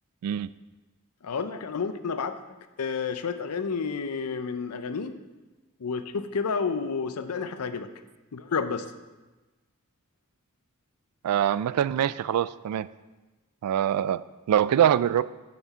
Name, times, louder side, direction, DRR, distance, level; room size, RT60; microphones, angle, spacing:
voice 1, 1.2-2.4 2.8-5.1 5.8-7.9 8.3-8.9, left 5 dB, 90° left, 10 dB, 0.6 m, -30 dB
voice 2, 11.2-12.9 13.6-14.2 14.5-15.2, right 10 dB, 90° right, 17 dB, 0.3 m, -24 dB
7.0 x 6.0 x 5.6 m, 1.2 s
head